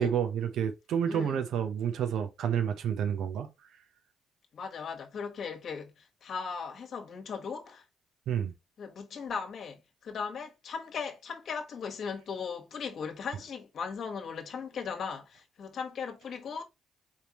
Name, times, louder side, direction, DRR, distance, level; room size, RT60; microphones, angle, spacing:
voice 1, 0.0-3.5 8.3-8.5, right 8 dB, 80° right, 0.7 m, -29 dB
voice 2, 1.1-1.4 4.5-7.8 8.8-16.6, left 6 dB, 60° left, 1.2 m, -38 dB
4.6 x 3.5 x 2.9 m
cardioid pair, 90°, 0 cm